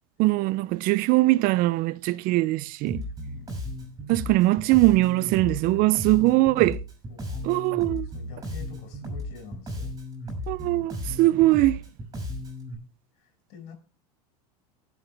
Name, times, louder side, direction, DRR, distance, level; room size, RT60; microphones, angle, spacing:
voice 1, 0.2-3.0 4.1-6.8 7.4-8.1 10.5-11.8, right 19 dB, 45° right, 0.5 m, -21 dB
Bass guitar, 2.9-12.7, left 1 dB, 20° right, 6.1 m, -35 dB
voice 2, 3.2-3.6 7.1-7.7 8.0-9.9 13.1-13.8, left 7 dB, 55° left, 6.3 m, -46 dB
18.5 x 8.0 x 3.4 m
supercardioid pair, 115°, 20 cm